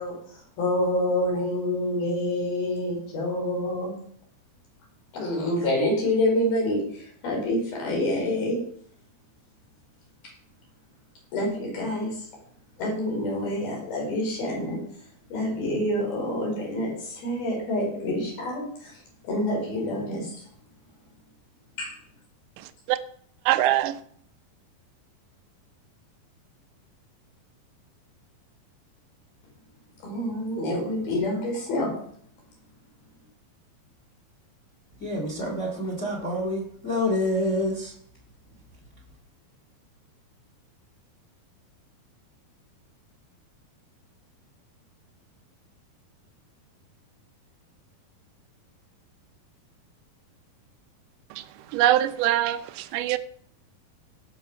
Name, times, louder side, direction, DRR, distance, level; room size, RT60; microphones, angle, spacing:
voice 1, 0.0-3.9 5.1-8.6 11.3-12.3 12.8-14.8 15.3-20.4 21.8-21.9 30.0-31.9, left 1 dB, 75° left, 6.2 m, -27 dB
voice 2, 22.6-23.0 23.5-24.0 51.3-53.2, right 13 dB, 80° right, 1.9 m, -24 dB
voice 3, 35.0-37.9, left 1 dB, 25° left, 1.9 m, -27 dB
17.0 x 6.2 x 6.1 m
omnidirectional pair, 4.4 m